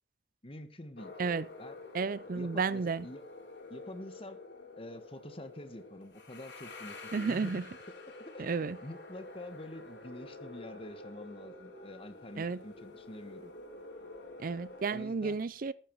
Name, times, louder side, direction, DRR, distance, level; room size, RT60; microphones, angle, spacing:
voice 1, 0.4-1.1 1.6-1.8 2.3-3.3 3.7-4.4 4.8-7.6 8.3-13.5 14.9-15.4, left 1 dB, 30° left, 1.3 m, -47 dB
sound 1, 1.0-15.1, left 2 dB, 85° left, 3.3 m, -49 dB
voice 2, 1.9-3.0 7.1-7.6 8.4-8.8 12.4-12.6 14.4-15.7, right 4 dB, 50° right, 0.5 m, -32 dB
14.5 x 9.1 x 4.6 m
head